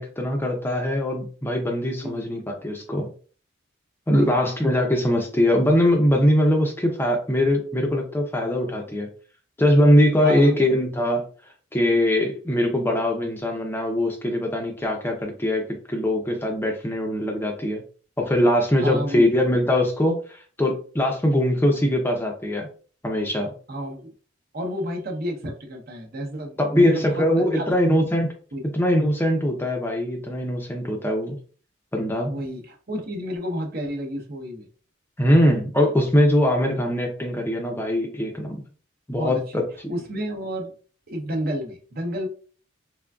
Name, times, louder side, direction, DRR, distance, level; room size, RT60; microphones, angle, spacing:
voice 1, 0.0-3.1 4.1-9.1 9.6-11.2 11.7-17.8 18.2-22.7 23.0-23.5 26.6-28.3 28.7-31.4 31.9-32.3 35.2-38.6 39.1-39.7, left 1 dB, 10° left, 2 dB, 0.5 m, -21 dB
voice 2, 10.2-10.6 18.8-19.2 23.7-24.1 24.5-27.6 28.5-28.6 32.3-34.7 39.2-39.4 39.9-40.7 41.1-42.3, equal, 50° right, 2 dB, 0.8 m, -30 dB
3.7 x 3.4 x 2.3 m, 0.41 s
head